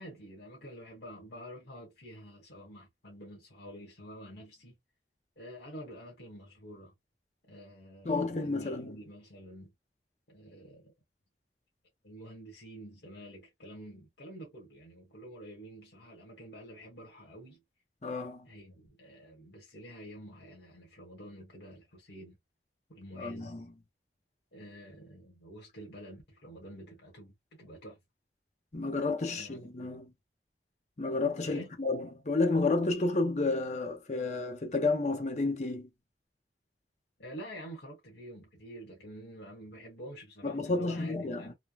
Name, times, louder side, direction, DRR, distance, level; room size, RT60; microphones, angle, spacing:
voice 1, 0.0-4.8 5.4-6.9 7.5-9.7 10.3-10.9 12.0-17.6 18.4-22.4 22.9-23.6 24.5-27.3 27.6-28.0 29.3-30.0 31.4-31.7 37.2-41.5, equal, 70° left, 1.2 m, -48 dB
voice 2, 8.0-8.9 18.0-18.5 23.2-23.7 28.7-30.1 31.0-35.9 40.4-41.5, left 3 dB, 40° left, 0.7 m, -31 dB
3.3 x 2.1 x 2.4 m
head